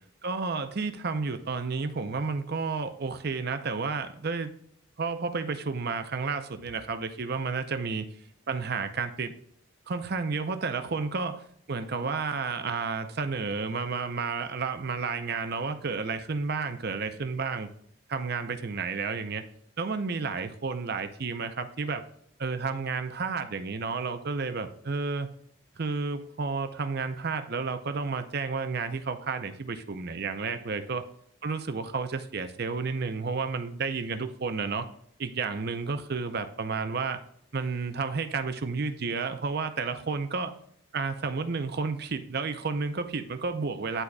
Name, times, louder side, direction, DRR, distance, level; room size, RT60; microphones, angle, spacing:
voice 1, 0.2-4.5 5.0-8.1 8.5-9.3 9.9-11.4 11.7-17.7 18.1-19.4 19.8-22.0 22.4-25.3 25.8-31.0 31.4-34.9 35.2-37.2 37.5-40.5 40.9-44.0, right 4 dB, 50° right, 9 dB, 0.6 m, -31 dB
11.5 x 4.0 x 2.3 m, 0.66 s
head